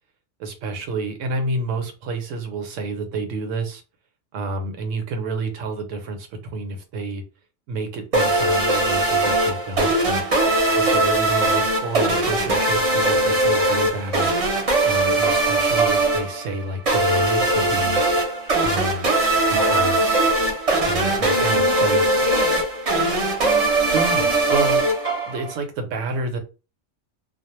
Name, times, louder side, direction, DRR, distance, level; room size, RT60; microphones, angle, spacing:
voice 1, 0.4-3.8 4.3-7.2 7.7-14.3 14.8-18.0 18.6-19.1 19.5-20.1 20.8-22.3 23.9-24.8 25.3-26.4, right 2 dB, 75° right, 1.0 m, -29 dB
sound 1, 8.1-25.6, right 2 dB, 35° right, 0.6 m, -20 dB
voice 2, 19.5-20.3 21.2-24.3, left 1 dB, 50° left, 0.4 m, -32 dB
2.3 x 2.0 x 3.0 m
omnidirectional pair, 1.3 m